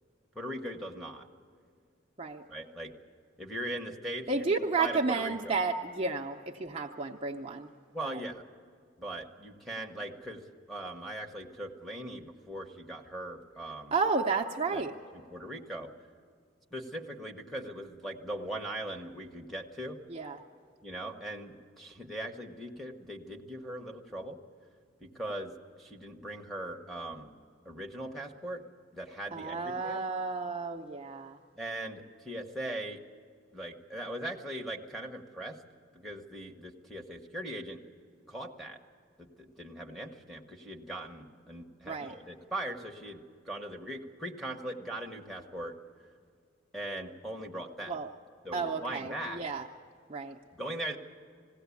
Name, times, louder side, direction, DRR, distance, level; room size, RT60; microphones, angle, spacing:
voice 1, 0.3-1.3 2.5-2.9 3.4-5.5 7.9-8.4 9.0-10.4 10.7-13.9 14.7-14.8 15.3-15.9 16.7-20.0 20.8-24.4 25.0-27.3 27.6-28.6 28.9-30.0 31.6-33.0 33.5-35.6 35.9-37.8 38.3-38.8 39.2-45.7 46.7-48.0 48.4-49.4 50.5-51.0, right 1 dB, ahead, -1 dB, 1.1 m, -40 dB
voice 2, 4.3-7.7 8.0-8.2 13.9-14.9 20.1-20.4 29.3-31.4 41.9-42.1 47.9-48.1 48.5-49.7 50.1-50.4, right 4 dB, 25° right, 0 dB, 0.6 m, -32 dB
20.5 x 16.5 x 8.4 m, 2.2 s
head